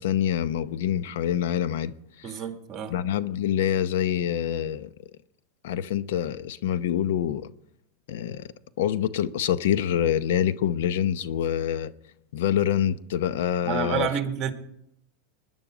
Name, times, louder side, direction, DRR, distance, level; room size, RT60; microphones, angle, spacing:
voice 1, 0.0-2.3 2.9-4.9 5.6-7.5 8.1-8.4 8.8-11.9 12.3-14.1, left 10 dB, 75° left, 0.7 m, -26 dB
voice 2, 2.2-2.9 13.6-14.5, right 8 dB, 30° right, 1.8 m, -29 dB
20.5 x 10.5 x 5.0 m
supercardioid pair, 145°, 0 cm